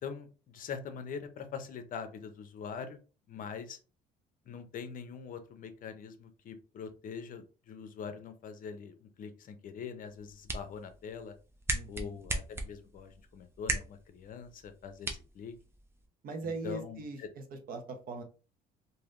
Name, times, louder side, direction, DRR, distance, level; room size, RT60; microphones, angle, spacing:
voice 1, 0.0-3.0 3.3-3.8 4.5-11.3 11.9-15.5 16.4-17.3, left 6 dB, 55° left, 8 dB, 0.6 m, -43 dB
sound 1, 10.1-16.1, right 2 dB, 15° right, 0.6 m, -39 dB
voice 2, 11.7-12.1 16.2-18.2, right 3 dB, 55° right, 5 dB, 0.9 m, -40 dB
3.2 x 2.7 x 2.5 m, 0.34 s
cardioid pair, 110°, 17 cm